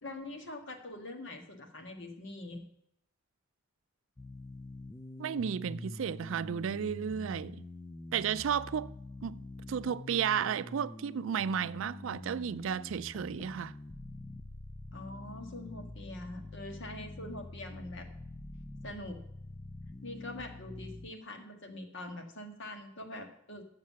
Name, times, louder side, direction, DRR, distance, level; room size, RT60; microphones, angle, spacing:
voice 1, 0.0-2.6 14.9-18.1 18.8-19.2 20.0-23.6, left 1 dB, 60° left, 1.7 m, -44 dB
sound 1, 4.2-21.1, left 2 dB, 15° left, 0.3 m, -46 dB
voice 2, 5.2-7.6 8.1-9.0 9.2-13.7, right 8 dB, 70° right, 0.4 m, -33 dB
7.4 x 6.5 x 7.3 m
head